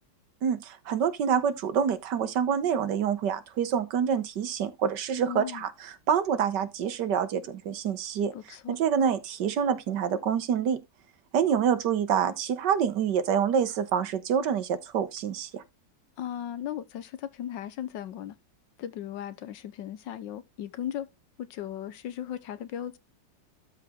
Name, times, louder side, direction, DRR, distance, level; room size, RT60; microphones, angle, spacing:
voice 1, 0.4-8.3 8.7-10.8 11.3-15.6, right 8 dB, 70° right, 1.5 m, -27 dB
voice 2, 5.2-5.6 8.3-8.8 16.2-18.4 18.8-21.1 21.4-23.0, left 10 dB, 80° left, 1.5 m, -37 dB
12.5 x 4.7 x 3.6 m
omnidirectional pair, 2.0 m